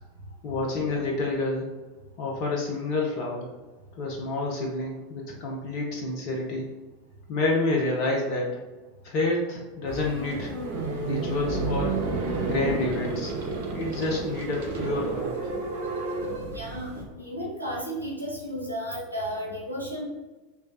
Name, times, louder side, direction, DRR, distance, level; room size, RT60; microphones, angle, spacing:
voice 1, 0.4-1.7 2.2-3.5 4.0-6.7 7.3-8.6 9.0-10.5 11.0-12.0 12.4-13.3 13.7-15.3, left 2 dB, 45° left, -2 dB, 0.8 m, -28 dB
sound 1, 9.9-17.0, right 3 dB, 60° right, 0.7 m, -31 dB
voice 2, 16.5-20.0, equal, 90° left, -3 dB, 1.3 m, -33 dB
3.4 x 3.2 x 3.9 m, 1.2 s
figure-of-eight pair, 80°, 0 cm